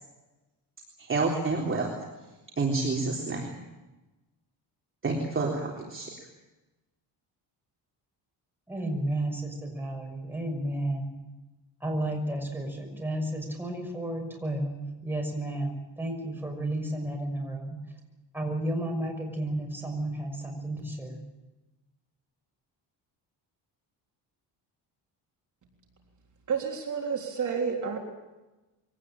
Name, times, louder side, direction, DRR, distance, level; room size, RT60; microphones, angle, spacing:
voice 1, 1.0-1.9 2.6-3.5 5.0-6.1, right 3 dB, 30° right, -2 dB, 3.8 m, -28 dB
voice 2, 8.7-11.1 11.8-17.8 18.3-21.2, right 1 dB, 5° right, 1 dB, 6.2 m, -32 dB
voice 3, 26.5-28.0, right 6 dB, 45° right, 1 dB, 3.6 m, -30 dB
23.5 x 18.5 x 8.8 m, 1.1 s
cardioid pair, 140°, 43 cm